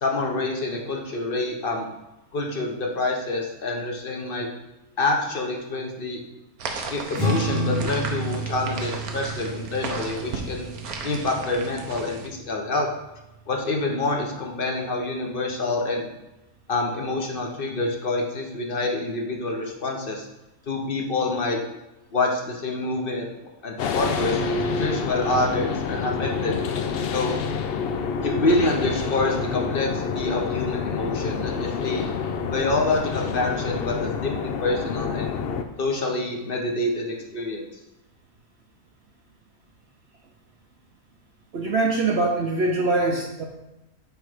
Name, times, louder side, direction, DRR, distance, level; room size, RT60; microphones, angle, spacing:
voice 1, 0.0-1.9 2.3-4.5 5.0-6.2 6.9-10.7 11.0-12.9 13.5-16.1 16.7-20.3 20.7-21.6 22.1-23.3 23.6-26.6 27.1-27.4 28.2-32.0 32.5-35.4 35.8-37.7, left 2 dB, 45° left, 1 dB, 1.0 m, -27 dB
sound 1, 6.6-12.3, right 4 dB, 80° right, 1.3 m, -35 dB
sound 2, 7.1-13.8, right 1 dB, 80° left, 3.0 m, -31 dB
sound 3, 23.8-35.6, left 5 dB, 65° left, 0.6 m, -28 dB
voice 2, 41.5-43.4, right 2 dB, 55° right, 0 dB, 0.9 m, -23 dB
8.0 x 3.3 x 5.0 m, 0.95 s
omnidirectional pair, 1.5 m